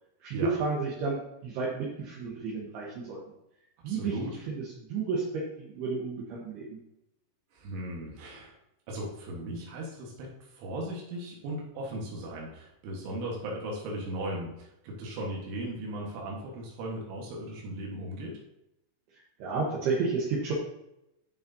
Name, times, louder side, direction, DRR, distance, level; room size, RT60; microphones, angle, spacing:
voice 1, 0.2-3.2 3.8-4.2 4.5-6.8 19.4-20.5, right 4 dB, 70° right, -4 dB, 2.9 m, -31 dB
voice 2, 3.9-4.3 7.5-8.6 8.9-18.4, right 1 dB, 90° right, -3 dB, 4.0 m, -37 dB
9.7 x 7.2 x 2.7 m, 0.85 s
omnidirectional pair, 5.3 m